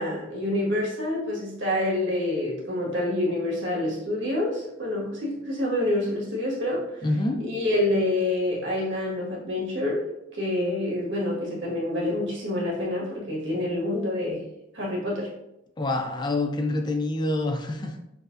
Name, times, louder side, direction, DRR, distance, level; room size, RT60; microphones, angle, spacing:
voice 1, 0.0-7.1 7.4-10.0 10.3-14.4 14.7-15.3, left 1 dB, 65° right, -4 dB, 1.5 m, -27 dB
voice 2, 7.0-7.4 15.8-18.0, left 2 dB, 20° left, 4 dB, 0.3 m, -26 dB
6.0 x 2.7 x 2.6 m, 0.86 s
head